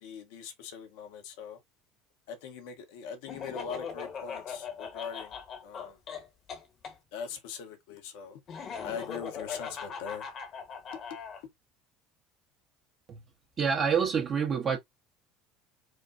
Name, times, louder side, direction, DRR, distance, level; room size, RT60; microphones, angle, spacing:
voice 1, 0.0-1.6 2.3-5.3 5.6-6.0 7.1-8.4 8.8-10.3, left 6 dB, 65° left, 1.2 m, -41 dB
Laughter, 3.3-6.9 8.5-11.4, left 6 dB, 45° left, 1.3 m, -40 dB
voice 2, 13.6-14.8, right 6 dB, 40° right, 1.4 m, -27 dB
5.0 x 2.4 x 2.8 m
figure-of-eight pair, 65°, 0 cm